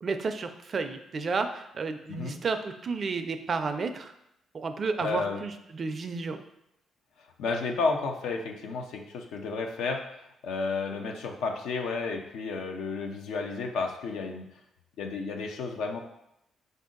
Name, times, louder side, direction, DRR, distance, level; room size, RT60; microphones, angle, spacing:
voice 1, 0.0-4.1 4.5-6.4, right 4 dB, 45° right, 8 dB, 0.4 m, -32 dB
voice 2, 5.0-5.4 7.4-14.5 15.0-16.0, left 4 dB, 85° left, 3 dB, 0.6 m, -32 dB
5.1 x 2.6 x 3.8 m, 0.83 s
cardioid pair, 90°, 0 cm